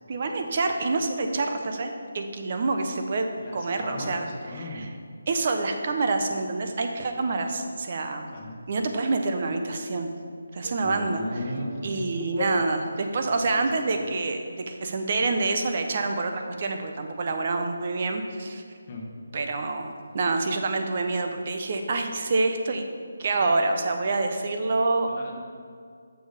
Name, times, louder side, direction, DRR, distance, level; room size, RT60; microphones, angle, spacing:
voice 1, 0.1-4.3 4.5-4.9 5.3-8.3 8.7-10.2 10.5-11.4 11.8-18.6 19.3-22.9 23.2-25.1, right 3 dB, 40° right, 5 dB, 0.7 m, -27 dB
voice 2, 3.4-4.9 8.3-8.6 10.8-12.1 13.5-14.1 18.9-19.1 25.1-25.4, left 1 dB, 30° left, -2 dB, 1.1 m, -37 dB
sound 1, 10.6-16.4, right 2 dB, 75° right, 0.5 m, -43 dB
6.8 x 6.2 x 4.8 m, 2.2 s
figure-of-eight pair, 170°, 0 cm